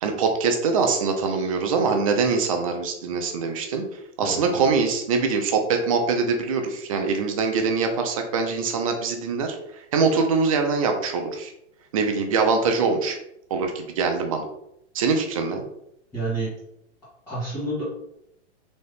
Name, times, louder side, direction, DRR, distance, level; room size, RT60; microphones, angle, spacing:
voice 1, 0.0-3.8 4.2-11.5 11.9-13.2 13.5-14.5 14.9-15.6, right 4 dB, 30° right, 4 dB, 0.5 m, -23 dB
voice 2, 1.2-1.6 4.2-4.7 16.1-16.5 17.3-17.8, right 2 dB, 10° left, -13 dB, 1.2 m, -30 dB
4.1 x 2.7 x 3.4 m, 0.77 s
hypercardioid pair, 160°, 36 cm